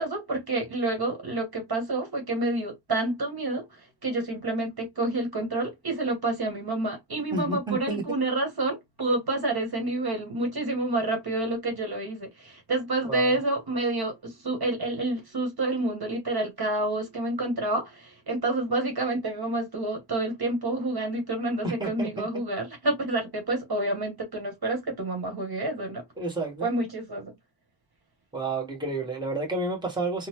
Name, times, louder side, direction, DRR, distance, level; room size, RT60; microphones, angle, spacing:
voice 1, 0.0-3.6 4.0-26.0 26.6-27.3, right 2 dB, 50° right, 1.3 m, -28 dB
voice 2, 7.3-8.0 13.1-13.3 21.6-22.3 26.2-26.7 28.3-30.3, right 2 dB, 10° right, 1.3 m, -30 dB
3.8 x 2.2 x 3.0 m
wide cardioid pair, 115°, 46 cm